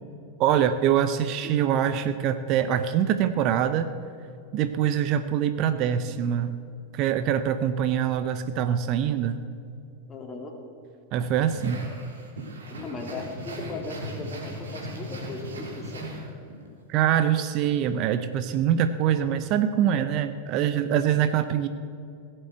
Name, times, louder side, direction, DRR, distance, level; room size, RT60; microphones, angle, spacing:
voice 1, 0.4-3.9 4.5-6.6 6.9-9.4 11.1-11.9 16.9-21.7, right 9 dB, 40° right, 10 dB, 0.6 m, -24 dB
voice 2, 10.1-10.5 12.7-16.3, left 3 dB, 20° left, 1 dB, 2.7 m, -38 dB
sound 1, 11.5-16.7, right 1 dB, 65° right, 2.8 m, -37 dB
16.5 x 7.6 x 8.0 m, 2.5 s
figure-of-eight pair, 90°, 0 cm